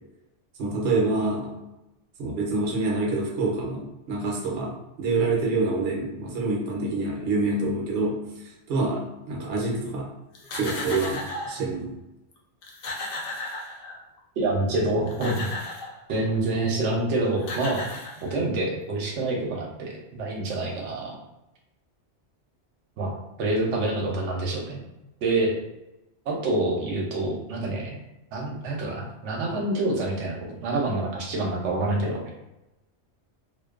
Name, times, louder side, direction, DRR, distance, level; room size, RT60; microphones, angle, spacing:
voice 1, 0.6-1.5 2.2-10.1 10.5-11.9, right 3 dB, 60° right, -2 dB, 0.8 m, -27 dB
sound 1, 10.3-11.7 12.3-12.4 12.6-14.2 14.9-16.0 17.0-17.1 17.4-18.6, left 2 dB, 60° left, 0.6 m, -35 dB
voice 2, 14.4-15.5 16.1-17.9 18.2-21.1 23.0-23.1 23.4-24.8 25.2-25.5 26.3-27.9 28.3-32.3, right 2 dB, 85° right, -1 dB, 0.9 m, -27 dB
2.5 x 2.2 x 2.3 m, 0.93 s
omnidirectional pair, 1.2 m